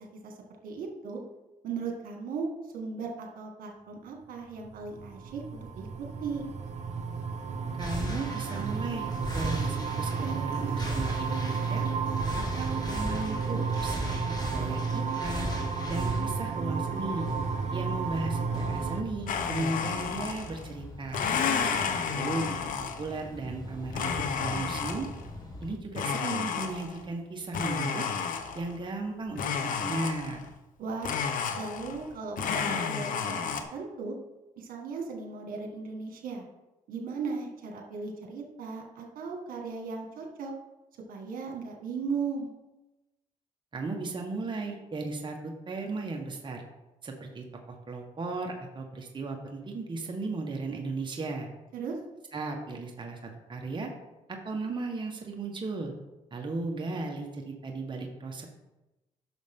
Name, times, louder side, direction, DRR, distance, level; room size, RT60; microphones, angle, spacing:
voice 1, 0.6-1.2 1.6-2.5 2.7-6.4 21.5-21.8 30.8-31.2 31.5-33.4 33.7-34.1 34.6-36.4 36.9-40.5 41.1-42.5 51.7-52.0, right 4 dB, 80° right, 2 dB, 1.8 m, -37 dB
sound 1, 4.6-19.0, right 5 dB, 55° right, 1.0 m, -32 dB
sound 2, 7.8-25.7, left 1 dB, 30° left, 2.2 m, -39 dB
voice 2, 7.8-11.9 12.6-14.0 14.4-15.5 15.9-17.3 17.7-21.3 22.0-22.6 23.0-24.1 24.4-25.1 25.6-28.1 28.5-30.4 43.7-46.6 47.0-51.5 52.3-53.9 54.3-55.9 56.3-58.5, right 3 dB, 35° right, 1 dB, 1.3 m, -36 dB
Domestic sounds home sounds, 19.3-20.7 21.1-23.2 23.9-25.2 25.9-27.1 27.5-28.8 29.4-30.5 31.0-32.1 32.4-33.6, left 6 dB, 70° left, 0.9 m, -31 dB
10.5 x 6.5 x 3.7 m, 1.0 s
cardioid pair, 95°, 14 cm